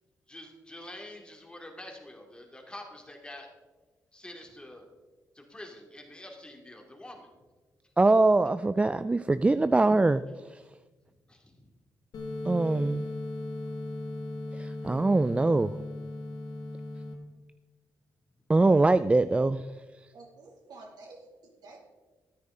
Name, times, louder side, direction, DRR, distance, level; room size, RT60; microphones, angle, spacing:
voice 1, 0.3-3.5 4.1-4.8 5.3-7.3 11.3-11.6, left 1 dB, 15° left, 1 dB, 2.5 m, -46 dB
voice 2, 8.0-10.2 10.5-10.6 12.5-13.1 14.5-15.7 18.5-19.7, right 2 dB, 15° right, 13 dB, 0.3 m, -23 dB
sound 1, 12.1-17.1, left 2 dB, 65° left, 1.7 m, -37 dB
voice 3, 20.1-21.8, right 3 dB, 75° right, 0 dB, 2.7 m, -50 dB
13.0 x 9.6 x 3.8 m, 1.3 s
cardioid pair, 75°, 7 cm